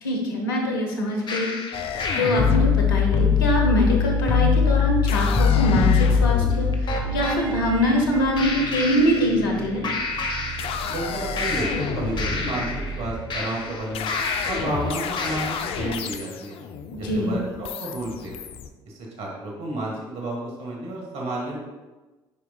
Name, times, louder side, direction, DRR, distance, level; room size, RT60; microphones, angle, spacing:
voice 1, 0.0-1.5 2.2-9.8 17.0-17.4, equal, 90° left, 1 dB, 0.9 m, -23 dB
sound 1, 1.3-7.4 8.4-9.6 9.8-11.1 11.4-14.8 15.2-15.8, left 6 dB, 45° left, 1.0 m, -23 dB
sound 2, 1.7-8.5 9.5-10.0 10.4-18.7, left 7 dB, 60° left, 0.5 m, -32 dB
sound 3, 3.3-13.4, right 8 dB, 45° right, 0.5 m, -33 dB
voice 2, 10.9-12.7 13.0-14.1 14.4-16.6 17.0-18.3 18.8-21.6, right 2 dB, 65° right, -2 dB, 1.5 m, -31 dB
9.1 x 4.8 x 2.3 m, 1.2 s
hypercardioid pair, 55°, 11 cm